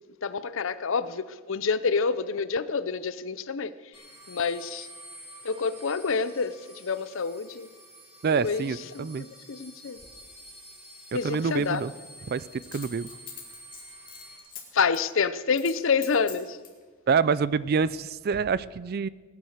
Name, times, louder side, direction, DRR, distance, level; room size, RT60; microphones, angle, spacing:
voice 1, 0.2-3.7 4.3-4.9 5.4-7.7 8.4-10.0 11.1-11.8 14.7-16.6, left 5 dB, 60° left, 15 dB, 0.6 m, -28 dB
sound 1, 3.9-14.4, right 1 dB, 15° right, 5.5 m, -49 dB
voice 2, 8.2-9.2 11.2-11.9 12.3-12.4 12.7-13.1 17.1-19.1, right 5 dB, 45° right, 19 dB, 0.4 m, -26 dB
Coin (dropping), 9.9-10.1 12.6-14.6 14.9-15.1 15.5-16.8 17.4-18.0 18.3-18.4, left 8 dB, 40° left, 3.0 m, -44 dB
19.5 x 9.6 x 6.6 m, 1.4 s
head